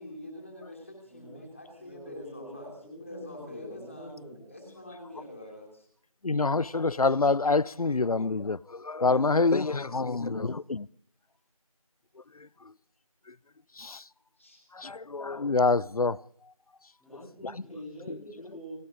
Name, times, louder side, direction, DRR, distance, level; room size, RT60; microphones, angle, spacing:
voice 1, 0.0-2.7 3.0-4.2 4.5-5.9 9.1-10.2 14.4-14.6, left 1 dB, 25° left, 2.9 m, -45 dB
voice 2, 1.0-1.4 1.7-4.8 10.0-10.5 17.0-18.7, equal, ahead, 3.1 m, -46 dB
voice 3, 6.2-10.9 12.3-12.7 13.3-13.4 13.7-14.1 14.7-16.2 17.1-17.7 18.1-18.5, left 3 dB, 85° left, 0.5 m, -27 dB
29.0 x 11.5 x 3.8 m
figure-of-eight pair, 175°, 18 cm